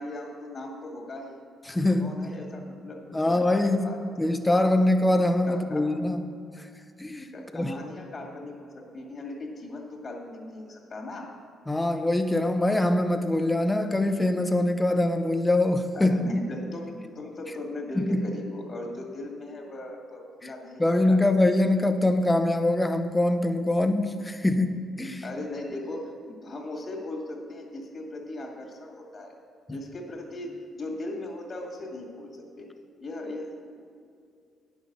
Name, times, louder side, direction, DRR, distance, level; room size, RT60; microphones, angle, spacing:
voice 1, 0.0-1.4 2.0-4.5 5.5-5.9 7.3-11.3 15.9-21.2 25.2-29.3 29.7-32.3 32.6-32.7 33.0-33.5, left 1 dB, 45° left, 1 dB, 2.2 m, -38 dB
voice 2, 1.7-2.1 3.1-3.9 4.2-6.2 7.0-7.7 11.7-16.3 18.0-18.3 20.4-20.5 20.8-25.2 29.7-29.8, left 1 dB, 15° left, 8 dB, 0.7 m, -24 dB
9.9 x 6.4 x 6.7 m, 2.3 s
cardioid pair, 90°, 0 cm